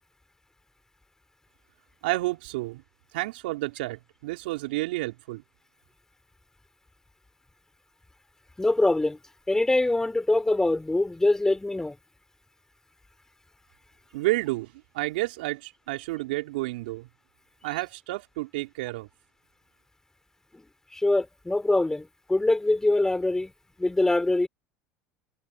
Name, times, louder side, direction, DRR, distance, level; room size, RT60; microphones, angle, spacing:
voice 1, 2.0-2.8 3.1-5.4 14.1-17.1 17.6-19.1, right 20 dB, 75° right, 3.8 m, -30 dB
voice 2, 8.6-9.2 9.5-12.0 20.9-23.5 23.8-24.5, left 2 dB, 10° left, 3.7 m, -23 dB
hypercardioid pair, 80°, 5 cm